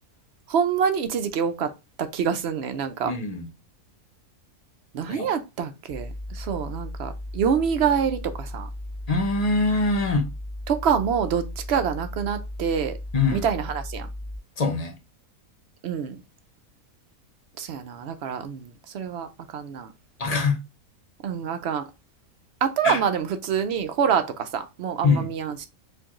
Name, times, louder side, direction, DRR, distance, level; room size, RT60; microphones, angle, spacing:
voice 1, 0.5-1.7 2.0-3.1 4.9-8.7 10.7-13.0 13.3-14.1 15.8-16.2 17.6-19.9 21.2-21.8 22.6-25.7, right 7 dB, 65° right, 0.7 m, -26 dB
voice 2, 3.0-3.5 5.1-5.3 9.1-10.3 13.1-13.4 14.6-14.9 20.2-20.6 22.8-23.0 25.0-25.3, left 3 dB, 35° left, 0.7 m, -23 dB
sound 1, 5.9-14.4, left 1 dB, ahead, 1.8 m, -36 dB
4.5 x 2.5 x 2.9 m
omnidirectional pair, 1.5 m